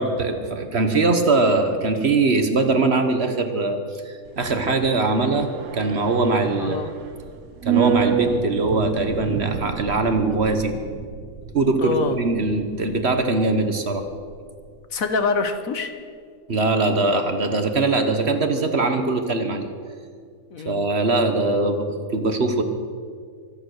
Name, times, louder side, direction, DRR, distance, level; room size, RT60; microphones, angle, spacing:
voice 1, 0.0-3.8 4.0-6.8 7.6-10.7 11.5-14.0 16.5-19.7 20.6-22.6, right 3 dB, 50° right, 7 dB, 1.3 m, -21 dB
sound 1, 4.3-14.7 15.0-15.1, right 7 dB, 75° right, 1.3 m, -29 dB
voice 2, 6.6-6.9 11.8-12.2 14.9-15.9 20.5-20.9, left 4 dB, 65° left, 8 dB, 1.5 m, -25 dB
24.0 x 9.0 x 6.4 m, 2.1 s
omnidirectional pair, 1.6 m